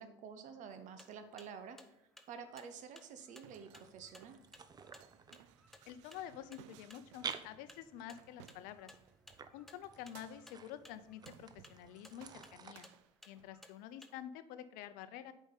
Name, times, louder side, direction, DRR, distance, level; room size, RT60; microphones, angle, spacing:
voice 1, 0.0-1.8 2.3-4.4, right 6 dB, 55° right, 9 dB, 1.0 m, -49 dB
sound 1, 0.7-14.2, left 1 dB, ahead, 0.7 m, -61 dB
sound 2, 3.2-9.1 9.8-10.7 11.2-11.9 12.2-13.6, right 13 dB, 80° right, 0.4 m, -62 dB
sound 3, 3.5-12.7, right 6 dB, 25° right, 0.6 m, -52 dB
voice 2, 5.9-8.9 9.5-12.9 13.3-15.3, left 10 dB, 70° left, 12 dB, 0.6 m, -49 dB
8.0 x 5.0 x 4.0 m, 0.79 s
supercardioid pair, 90°, 15 cm